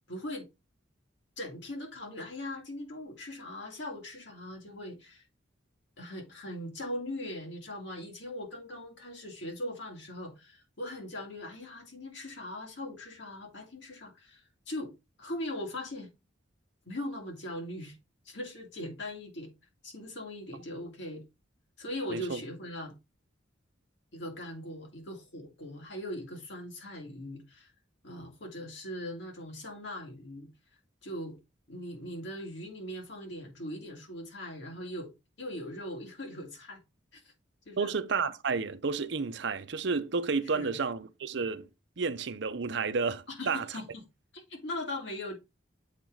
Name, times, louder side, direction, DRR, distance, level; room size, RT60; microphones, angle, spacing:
voice 1, 0.1-0.5 1.4-5.2 6.0-14.4 14.7-14.9 15.2-16.1 16.9-18.0 18.3-19.5 19.8-21.2 21.8-23.0 24.1-27.7 28.0-30.5 31.0-31.4 31.7-35.1 35.4-36.8 37.1-37.2 37.7-37.9 40.5-40.8 43.3-44.0 44.3-45.4, left 1 dB, 65° left, 2.3 m, -40 dB
voice 2, 37.8-41.7 42.0-43.7, right 4 dB, 65° right, 0.6 m, -31 dB
7.3 x 4.6 x 3.8 m
head